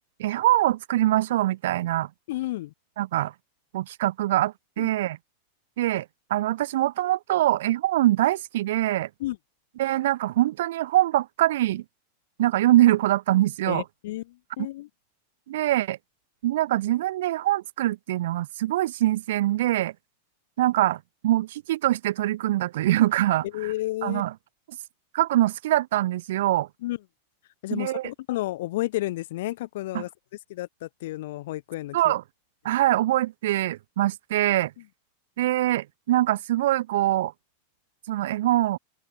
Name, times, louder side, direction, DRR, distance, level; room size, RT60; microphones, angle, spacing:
voice 1, 0.2-2.1 3.0-3.3 3.7-5.2 5.8-9.1 9.8-11.8 12.4-13.8 15.5-16.0 16.4-19.9 20.6-23.5 24.0-24.3 25.1-26.7 27.7-28.1 29.9-30.0 31.9-32.2 32.6-34.7 35.4-37.3 38.1-38.8, right 14 dB, 55° right, 0.8 m, -23 dB
voice 2, 2.3-2.7 4.8-4.9 9.2-9.4 13.7-14.9 23.5-24.3 26.8-27.0 27.6-30.1 30.5-32.1, left 16 dB, 55° left, 2.2 m, -31 dB
open air
figure-of-eight pair, 90°, 0 cm